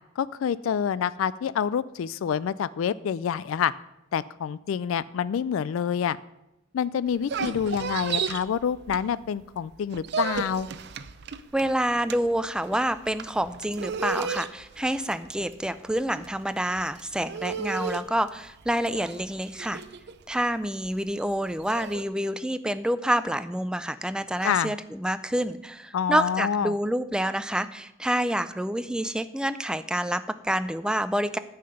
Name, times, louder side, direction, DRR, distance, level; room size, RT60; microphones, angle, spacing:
voice 1, 0.2-3.7 4.1-6.2 6.7-10.7 24.4-24.7 25.9-26.7, left 8 dB, 80° left, 18 dB, 0.3 m, -27 dB
sound 1, 7.1-9.4 9.7-22.0, right 5 dB, 55° right, 0.5 m, -34 dB
voice 2, 11.5-19.8 20.3-31.4, right 1 dB, 5° right, 12 dB, 0.4 m, -28 dB
10.0 x 5.7 x 7.7 m, 0.90 s
head